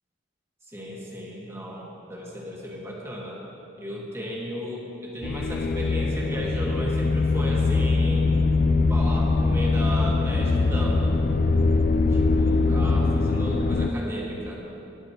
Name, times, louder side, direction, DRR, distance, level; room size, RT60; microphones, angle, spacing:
voice 1, 0.7-3.4 3.8-8.3 8.9-11.2 12.1-14.6, equal, 15° right, -3 dB, 1.4 m, -35 dB
sound 1, 5.2-13.9, left 3 dB, 45° left, 0.4 m, -22 dB
16.5 x 10.5 x 2.9 m, 3.0 s
head